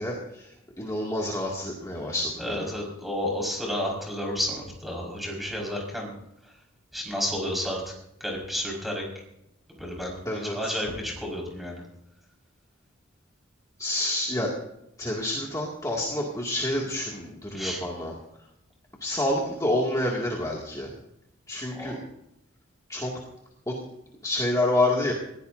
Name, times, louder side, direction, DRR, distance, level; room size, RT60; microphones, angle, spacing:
voice 1, 0.0-2.7 10.3-10.8 13.8-14.5 15.0-18.1 19.0-20.9 21.5-22.0 22.9-23.1 23.7-23.8 24.2-25.1, left 1 dB, 15° left, -3 dB, 2.2 m, -28 dB
voice 2, 2.4-6.1 6.4-6.6 6.9-7.9 8.2-9.0 9.8-11.8 17.5-17.8 21.7-22.0, left 1 dB, ahead, -2 dB, 5.0 m, -31 dB
20.5 x 16.5 x 2.7 m, 0.82 s
head